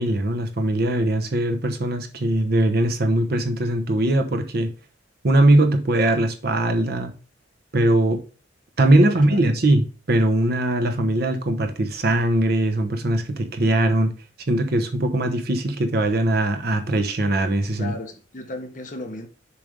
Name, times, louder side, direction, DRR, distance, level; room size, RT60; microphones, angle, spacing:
voice 1, 0.0-4.7 5.2-7.1 7.7-8.2 8.8-14.1 14.5-17.9, right 1 dB, 55° right, 0.9 m, -21 dB
voice 2, 9.0-9.4 17.8-19.3, left 2 dB, 45° left, 1.1 m, -35 dB
7.0 x 3.4 x 5.1 m
head